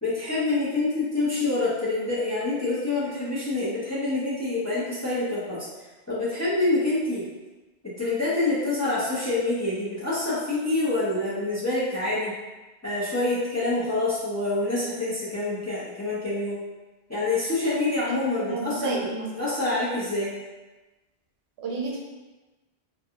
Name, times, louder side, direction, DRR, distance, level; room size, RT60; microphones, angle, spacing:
voice 1, 0.0-5.7 6.1-7.3 7.8-12.3 12.8-16.6 17.1-19.1 19.4-20.3, left 2 dB, 25° left, -9 dB, 0.4 m, -26 dB
voice 2, 18.5-19.3 21.6-22.0, right 4 dB, 90° right, -2 dB, 0.8 m, -31 dB
2.4 x 2.2 x 2.7 m, 1.2 s
omnidirectional pair, 1.0 m